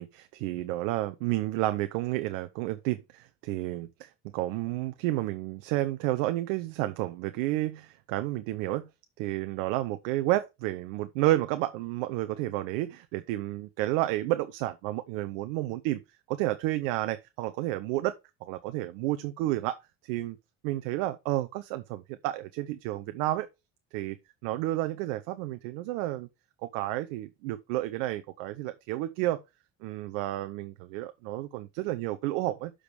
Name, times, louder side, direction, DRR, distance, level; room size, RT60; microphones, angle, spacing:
voice 1, 0.0-8.9 9.2-16.0 16.3-18.1 18.4-20.4 20.6-23.5 23.9-24.2 24.4-26.3 26.6-29.4 29.8-32.7, right 16 dB, 75° right, 0.8 m, -31 dB
6.9 x 5.0 x 5.0 m
hypercardioid pair, 65°, 38 cm